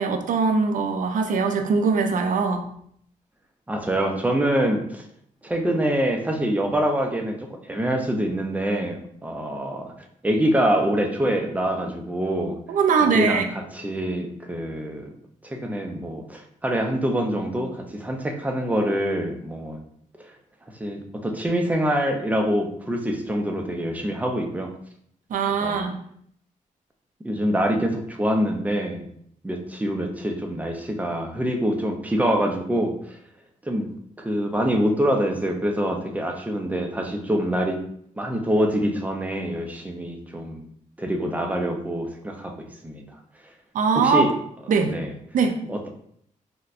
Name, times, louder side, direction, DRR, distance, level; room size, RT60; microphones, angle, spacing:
voice 1, 0.0-2.7 12.7-13.4 25.3-26.0 43.7-44.3 44.7-45.0 45.3-45.6, right 5 dB, 75° right, 6 dB, 0.4 m, -21 dB
voice 2, 3.7-5.0 5.4-9.9 10.2-12.6 13.0-13.4 13.7-15.1 15.4-19.8 20.2-20.3 20.7-24.7 25.6-25.8 27.2-29.1 29.4-33.2 33.6-33.9 34.2-37.8 38.2-40.7 41.0-43.2 43.9-44.3 44.8-45.1 45.7-45.9, equal, 10° right, 3 dB, 0.4 m, -25 dB
4.1 x 2.1 x 2.5 m, 0.66 s
wide cardioid pair, 135°, 14 cm